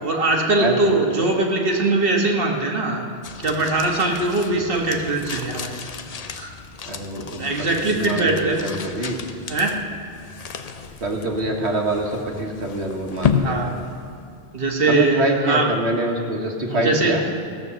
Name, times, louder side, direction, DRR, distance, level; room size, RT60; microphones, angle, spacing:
voice 1, 0.0-3.1 3.4-5.8 6.4-6.5 7.2-8.7 9.5-9.8 13.3-13.8 14.5-15.7 16.7-17.1, right 2 dB, 60° right, 1 dB, 1.5 m, -21 dB
sound 1, 3.2-14.6, left 6 dB, 45° left, 0.6 m, -32 dB
voice 2, 6.8-9.2 11.0-13.7 14.9-17.2, right 1 dB, 85° right, 1 dB, 1.6 m, -25 dB
16.5 x 7.0 x 6.8 m, 2.3 s
omnidirectional pair, 1.1 m